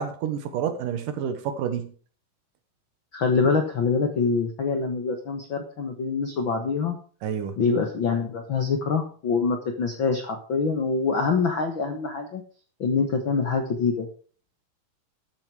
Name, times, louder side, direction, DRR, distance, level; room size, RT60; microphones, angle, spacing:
voice 1, 0.0-1.9 7.2-7.6, right 8 dB, 70° right, 8 dB, 2.6 m, -29 dB
voice 2, 3.1-7.0 7.6-12.4 12.8-14.1, left 5 dB, 60° left, 4 dB, 1.2 m, -25 dB
13.5 x 7.8 x 4.9 m, 0.42 s
omnidirectional pair, 4.3 m